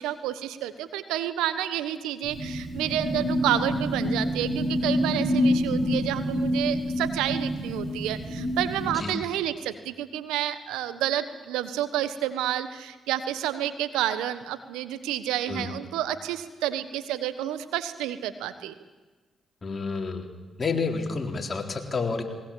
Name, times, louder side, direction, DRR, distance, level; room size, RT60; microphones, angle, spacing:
voice 1, 0.0-18.7, right 12 dB, 90° right, 12 dB, 1.3 m, -30 dB
sound 1, 2.2-8.9, equal, 65° right, 7.1 m, -27 dB
voice 2, 19.6-20.3 20.6-22.2, left 4 dB, 40° left, 3 dB, 3.8 m, -29 dB
20.5 x 20.0 x 8.7 m, 1.3 s
supercardioid pair, 50°, 0 cm